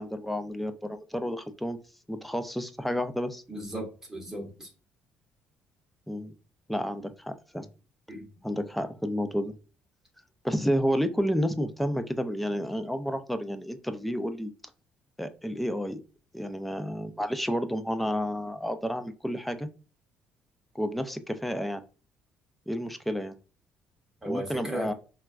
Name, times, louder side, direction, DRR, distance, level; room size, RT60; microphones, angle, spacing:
voice 1, 0.0-1.8 2.1-3.4 6.1-6.3 6.7-7.7 8.4-9.5 10.4-14.5 15.2-16.0 16.3-19.7 20.7-21.8 22.7-23.4 24.3-24.9, equal, ahead, 9 dB, 0.3 m, -30 dB
voice 2, 3.5-4.7 8.1-8.2 24.2-24.9, right 1 dB, 15° right, 1 dB, 0.8 m, -35 dB
3.9 x 2.2 x 2.3 m, 0.34 s
cardioid pair, 135°, 4 cm